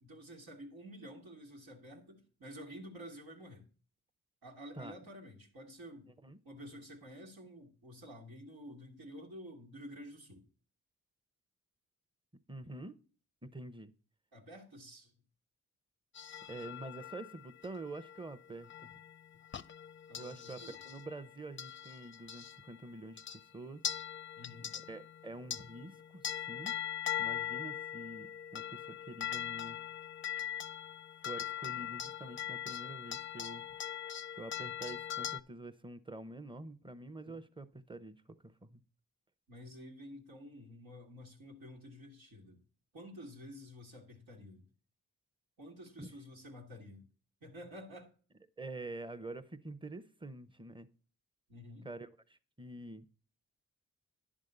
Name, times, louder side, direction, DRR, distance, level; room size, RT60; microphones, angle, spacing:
voice 1, 0.0-3.7 4.4-6.1 6.4-10.4 14.3-15.1 20.1-20.8 24.4-24.8 37.3-37.4 39.5-42.6 42.9-44.7 45.6-47.0 47.4-48.1 51.5-51.9, equal, 85° right, 1.7 m, -50 dB
voice 2, 12.5-13.0 13.4-13.9 16.5-18.9 20.2-20.6 20.8-23.8 24.9-26.8 27.2-29.8 31.2-33.6 34.4-38.8 46.0-46.1 48.6-50.9 51.8-53.0, right 2 dB, 15° right, 0.8 m, -47 dB
sound 1, 16.2-22.8 23.2-23.5 23.8-35.4, left 10 dB, 35° left, 0.5 m, -41 dB
10.5 x 3.7 x 6.6 m
cardioid pair, 55°, 36 cm